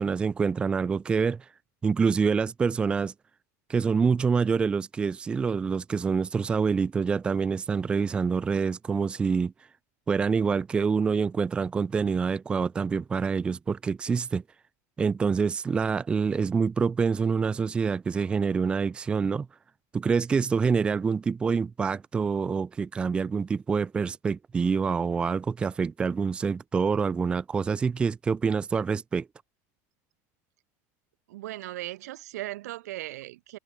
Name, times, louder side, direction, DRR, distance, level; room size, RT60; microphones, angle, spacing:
voice 1, 0.0-1.5 1.8-3.1 3.7-9.5 10.1-14.4 15.0-19.5 19.9-29.3, right 5 dB, 10° right, 0.6 m, -26 dB
voice 2, 31.3-33.6, right 16 dB, 90° right, 4.6 m, -37 dB
supercardioid pair, 170°, 8 cm